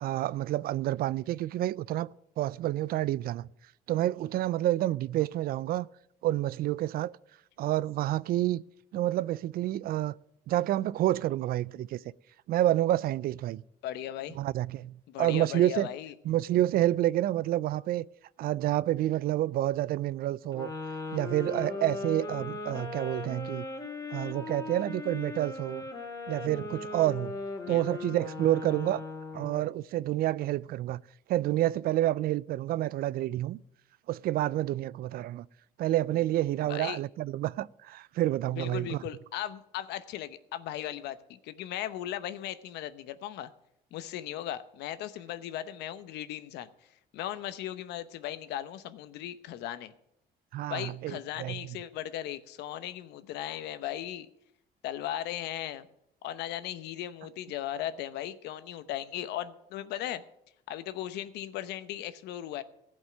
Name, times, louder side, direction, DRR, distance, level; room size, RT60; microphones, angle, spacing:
voice 1, 0.0-2.1 2.4-3.5 3.9-5.9 6.2-7.1 7.6-8.6 8.9-10.1 10.5-12.0 12.5-13.6 14.4-15.9 16.3-18.1 18.4-20.7 21.1-23.6 24.1-25.8 26.3-27.4 27.7-29.0 29.3-31.0 31.3-33.6 34.1-35.5 35.8-39.0 50.5-51.8, right 14 dB, 60° right, 0.4 m, -29 dB
voice 2, 13.8-14.4 15.1-16.1 27.6-27.8 36.7-37.0 38.5-43.5 43.9-46.7 47.1-49.9 50.7-54.3 54.8-55.9 56.2-60.2 60.7-62.6, left 12 dB, 85° left, 0.9 m, -37 dB
sound 1, 20.5-29.7, left 3 dB, 20° left, 2.6 m, -38 dB
15.0 x 5.4 x 9.4 m
cardioid pair, 110°, 17 cm